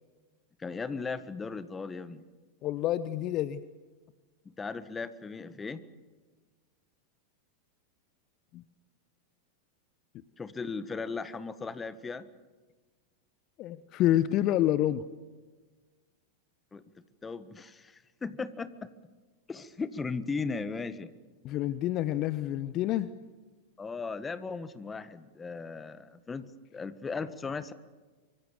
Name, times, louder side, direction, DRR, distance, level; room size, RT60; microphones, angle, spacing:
voice 1, 0.6-2.2 4.4-5.8 10.4-12.3 16.7-16.8 17.2-18.9 19.5-21.1 23.8-26.5 26.7-27.7, left 4 dB, 15° left, 14 dB, 1.5 m, -37 dB
voice 2, 2.6-3.6 8.5-8.6 13.6-15.0 21.4-23.1, left 13 dB, 35° left, 15 dB, 0.9 m, -28 dB
24.5 x 24.5 x 7.1 m, 1.3 s
figure-of-eight pair, 90°, 0 cm